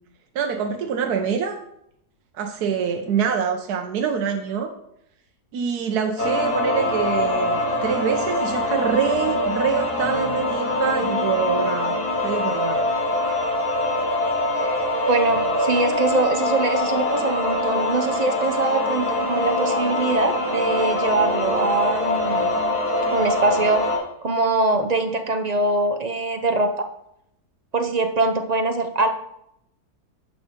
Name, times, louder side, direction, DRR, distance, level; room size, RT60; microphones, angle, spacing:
voice 1, 0.3-1.6 2.3-4.7 5.5-12.7, right 6 dB, 75° right, 4 dB, 1.4 m, -25 dB
sound 1, 6.2-24.0, left 1 dB, 75° left, 3.3 m, -23 dB
voice 2, 15.1-22.5 23.1-23.8 24.2-26.9 27.7-29.1, right 3 dB, 45° right, 5 dB, 0.5 m, -23 dB
11.0 x 6.3 x 5.1 m, 0.77 s
omnidirectional pair, 1.7 m